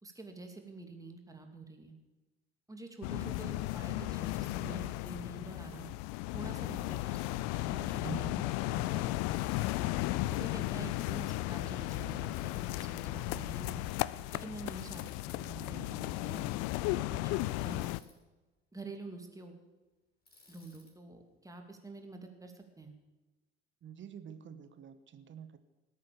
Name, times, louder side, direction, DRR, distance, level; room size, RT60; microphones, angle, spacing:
voice 1, 0.0-2.0 2.7-5.9 6.3-8.4 8.7-9.5 10.3-13.9 14.3-16.5 17.1-17.2 17.6-17.9 18.7-19.5 20.5-22.9, right 3 dB, 10° right, 4 dB, 2.7 m, -47 dB
sound 1, 3.0-18.0, left 18 dB, 55° left, 0.5 m, -35 dB
voice 2, 8.0-8.4 23.8-25.6, right 8 dB, 40° right, 11 dB, 1.4 m, -46 dB
Bicycle, 9.2-9.8 12.1-12.7 14.8-15.3 17.5-18.2 20.3-20.9, left 2 dB, 30° left, 5.6 m, -61 dB
19.0 x 8.5 x 7.1 m, 1.1 s
figure-of-eight pair, 55°, 31 cm